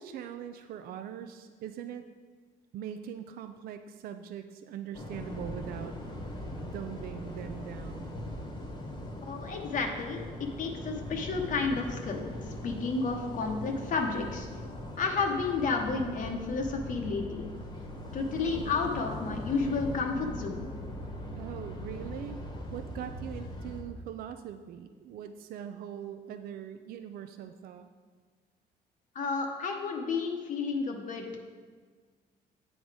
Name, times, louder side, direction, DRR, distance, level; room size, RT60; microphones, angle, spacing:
voice 1, 0.0-2.1 2.7-6.0 6.5-8.2 21.4-22.4 22.7-27.9, right 9 dB, 60° right, 8 dB, 0.4 m, -41 dB
sound 1, 4.9-23.8, left 1 dB, 25° left, 1.1 m, -40 dB
voice 2, 9.2-14.5 15.0-17.5 18.1-20.7 29.1-31.4, left 4 dB, 50° left, 2 dB, 0.8 m, -31 dB
8.7 x 3.9 x 4.8 m, 1.6 s
cardioid pair, 110°, 17 cm